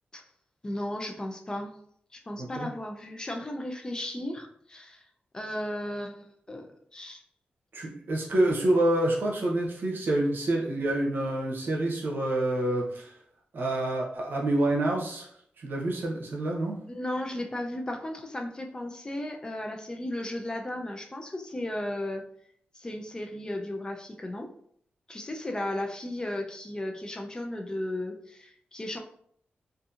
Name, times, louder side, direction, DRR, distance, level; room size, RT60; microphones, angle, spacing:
voice 1, 0.6-1.7 2.1-5.0 5.3-7.2 16.9-22.2 22.7-24.5 25.1-29.0, left 1 dB, 20° left, 3 dB, 0.4 m, -35 dB
voice 2, 7.7-13.1 13.5-15.3 15.6-16.8, right 1 dB, 70° right, -1 dB, 0.7 m, -27 dB
2.7 x 2.5 x 2.4 m, 0.66 s
wide cardioid pair, 95°, 4 cm